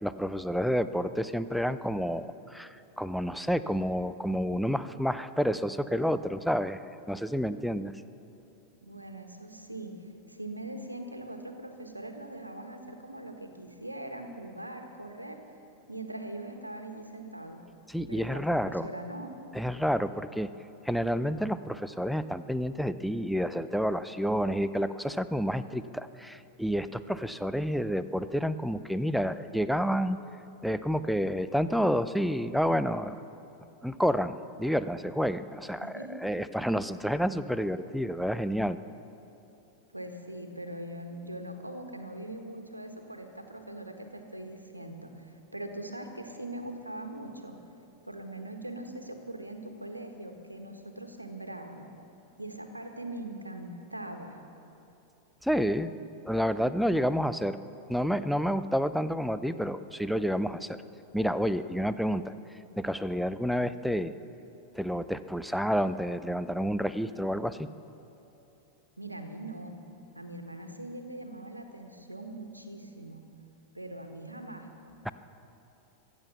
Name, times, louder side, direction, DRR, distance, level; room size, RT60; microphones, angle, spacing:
voice 1, 0.0-7.9 17.9-18.9 19.5-20.5 20.8-30.2 30.6-33.2 33.8-35.9 36.2-38.8 55.4-55.9 56.2-57.6 57.9-60.8 61.1-62.3 62.8-64.1 64.7-67.7 75.0-75.1, equal, ahead, 12 dB, 0.5 m, -29 dB
voice 2, 8.8-9.9 10.3-15.4 15.9-17.6 18.1-19.3 35.8-36.2 39.9-47.6 48.0-51.9 52.4-54.4 69.0-69.7 70.1-73.2 73.7-74.7, right 1 dB, 85° right, 5 dB, 1.5 m, -41 dB
23.0 x 8.5 x 7.1 m, 2.9 s
figure-of-eight pair, 90°, 0 cm